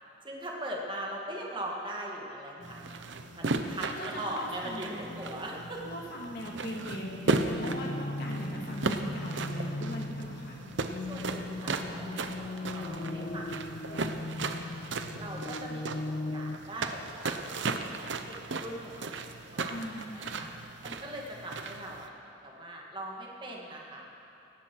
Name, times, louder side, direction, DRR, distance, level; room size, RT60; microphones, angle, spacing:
voice 1, 0.2-2.8 3.4-5.8 11.0-14.0 14.3-14.7 15.2-19.1 19.5-19.9 20.1-20.5 20.8-24.1, right 1 dB, 25° right, -2 dB, 1.9 m, -41 dB
sound 1, 2.6-13.8, left 1 dB, 85° left, 3.3 m, -49 dB
sound 2, 2.6-22.1, right 3 dB, 75° right, 0.8 m, -36 dB
voice 2, 3.8-5.1 5.8-10.6 19.7-20.5, equal, 50° left, -1 dB, 2.2 m, -40 dB
sound 3, 6.8-16.6, left 2 dB, 35° left, 0.4 m, -38 dB
18.0 x 14.0 x 4.6 m, 2.8 s
head